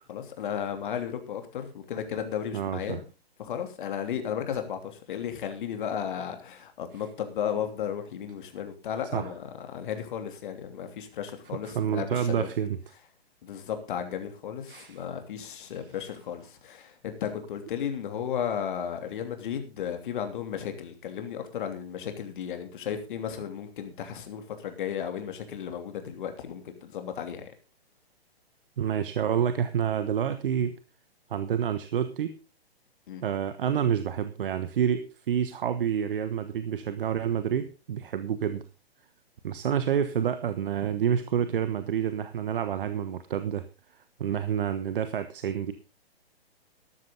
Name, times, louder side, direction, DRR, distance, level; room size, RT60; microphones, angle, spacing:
voice 1, 0.1-3.0 3.4-12.5 13.4-27.5 33.1-33.2, left 8 dB, 50° left, 7 dB, 3.0 m, -34 dB
voice 2, 2.5-3.0 9.1-9.3 11.6-12.8 14.7-15.0 28.8-30.8 31.3-32.4 33.2-38.6 39.4-43.7 44.2-45.7, right 8 dB, 60° right, 12 dB, 1.2 m, -28 dB
13.5 x 12.5 x 3.9 m, 0.31 s
hypercardioid pair, 130°, 31 cm